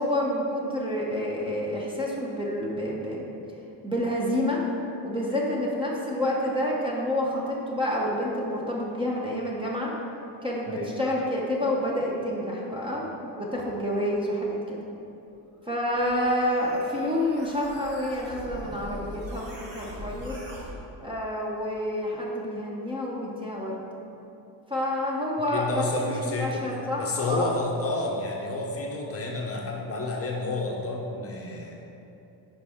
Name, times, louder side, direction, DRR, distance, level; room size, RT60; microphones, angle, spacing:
voice 1, 0.0-3.3 3.8-4.6 5.0-9.9 10.4-14.8 15.7-20.4 21.0-23.8 24.7-27.5, left 1 dB, 10° right, -4 dB, 0.6 m, -28 dB
sound 1, 15.7-20.7, equal, 50° right, 1.7 m, -41 dB
voice 2, 25.5-26.6 27.0-31.8, left 2 dB, 35° left, -1 dB, 0.6 m, -30 dB
9.4 x 5.2 x 3.6 m, 2.8 s
cardioid pair, 175°, 44 cm